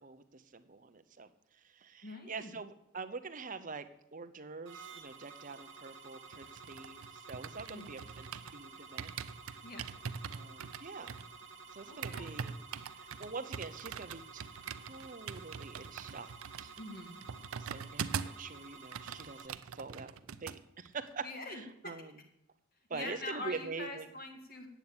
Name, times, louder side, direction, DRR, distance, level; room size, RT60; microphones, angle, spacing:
voice 1, 0.0-8.3 8.5-9.1 10.3-11.1 11.7-12.6 12.9-14.5 14.9-16.3 16.6-16.7 17.6-20.1 20.4-22.1 22.9-24.1, right 4 dB, 35° right, 10 dB, 0.7 m, -45 dB
voice 2, 2.0-2.5 7.7-8.0 9.6-9.9 11.9-12.4 16.8-17.2 21.2-21.9 22.9-24.7, left 2 dB, 40° left, 4 dB, 2.1 m, -44 dB
sound 1, 4.7-19.5, right 5 dB, 55° right, 1.3 m, -52 dB
sound 2, 6.3-8.6 9.0-18.5 18.7-20.6 20.9-21.1, right 7 dB, 75° right, 0.5 m, -43 dB
9.0 x 8.1 x 8.8 m, 0.81 s
head